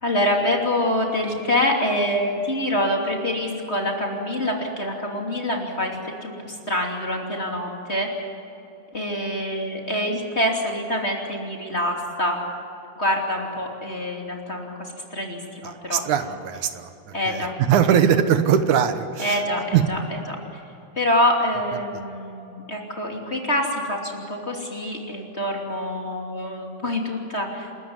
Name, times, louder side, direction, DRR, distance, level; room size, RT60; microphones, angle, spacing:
voice 1, 0.0-8.1 8.9-12.3 13.0-16.0 17.1-17.5 19.2-20.6 20.9-27.7, left 1 dB, 20° left, 0 dB, 2.9 m, -26 dB
voice 2, 15.6-19.4 19.7-19.8, right 8 dB, 80° right, 9 dB, 2.6 m, -21 dB
29.5 x 13.0 x 9.7 m, 2.8 s
omnidirectional pair, 3.4 m